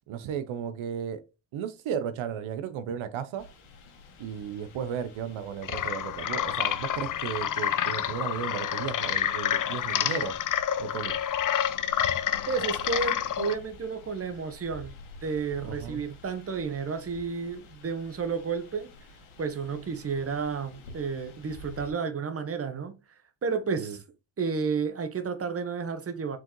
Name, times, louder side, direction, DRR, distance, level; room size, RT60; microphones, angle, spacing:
voice 1, 0.1-1.2 1.5-3.4 4.2-10.4 10.8-11.2 15.6-16.0 23.8-24.0, right 8 dB, 80° right, 0.7 m, -34 dB
sound 1, 3.4-21.9, left 2 dB, 85° left, 1.4 m, -50 dB
sound 2, 5.6-13.5, left 10 dB, 45° left, 0.5 m, -28 dB
voice 2, 12.5-14.9 15.2-18.9 19.4-23.0 23.4-24.0 24.4-26.4, right 5 dB, 30° right, 0.9 m, -31 dB
4.8 x 3.8 x 2.9 m
cardioid pair, 75°, 48 cm